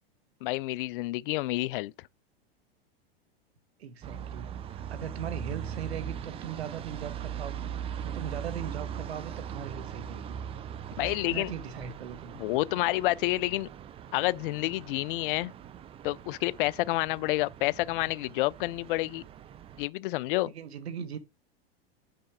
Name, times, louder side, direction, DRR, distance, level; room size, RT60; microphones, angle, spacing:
voice 1, 0.4-1.9 11.0-11.5 12.4-13.7 14.1-15.5 16.0-19.2 19.8-20.5, left 19 dB, 60° left, 0.4 m, -29 dB
voice 2, 3.8-10.4 11.0-12.3 20.4-21.2, right 8 dB, 90° right, 1.3 m, -40 dB
sound 1, 4.0-19.9, right 9 dB, 20° right, 0.4 m, -40 dB
sound 2, 5.0-19.0, left 7 dB, 30° left, 1.9 m, -60 dB
5.7 x 5.6 x 4.9 m
hypercardioid pair, 125°, 31 cm